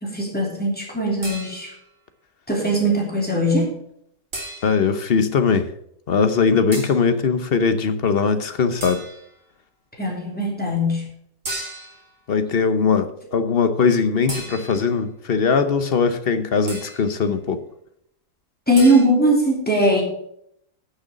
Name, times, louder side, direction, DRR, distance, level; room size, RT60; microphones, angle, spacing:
voice 1, 0.0-1.7 2.5-3.8 10.0-11.1 18.7-20.0, right 1 dB, 5° left, -1 dB, 2.9 m, -20 dB
sound 1, 1.2-1.9 4.3-5.0 6.7-7.1 8.8-9.4 11.5-12.1 14.3-15.0 16.7-17.2 18.8-19.1, right 2 dB, 50° right, 3.0 m, -34 dB
voice 2, 4.6-5.7 6.1-9.0 12.3-17.6, left 5 dB, 45° left, 10 dB, 0.9 m, -20 dB
9.7 x 6.3 x 7.4 m, 0.72 s
omnidirectional pair, 1.7 m